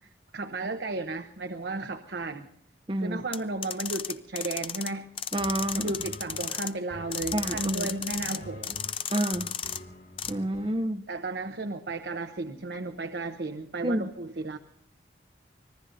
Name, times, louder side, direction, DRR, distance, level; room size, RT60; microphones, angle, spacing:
voice 1, 0.3-2.5 3.0-5.1 5.7-8.8 11.1-14.6, right 2 dB, 75° right, 0.8 m, -34 dB
voice 2, 2.9-3.2 5.3-5.9 7.3-7.9 9.1-9.5 10.3-11.0 13.8-14.1, right 1 dB, 30° right, 0.6 m, -29 dB
sound 1, 3.3-4.9 5.2-6.7 7.1-8.4 8.6-9.8 10.2-10.3, left 8 dB, 30° left, 0.6 m, -34 dB
sound 2, 5.3-10.7, left 1 dB, 60° left, 4.3 m, -46 dB
25.5 x 20.0 x 2.6 m
head